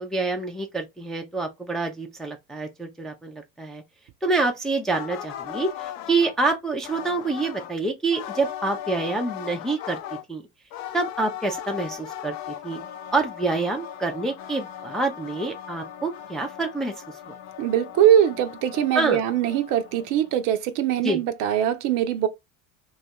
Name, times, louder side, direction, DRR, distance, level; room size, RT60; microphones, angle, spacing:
voice 1, 0.0-3.8 4.2-10.0 10.3-10.4 10.9-12.8 13.1-16.9 18.9-19.2 21.0-21.2, right 3 dB, ahead, 0.4 m, -27 dB
sound 1, 4.9-6.4 6.8-7.7 8.1-10.2 10.7-20.5, left 10 dB, 50° left, 0.6 m, -38 dB
voice 2, 17.6-22.3, right 10 dB, 50° right, 0.6 m, -22 dB
2.7 x 2.4 x 4.1 m
hypercardioid pair, 80°, 43 cm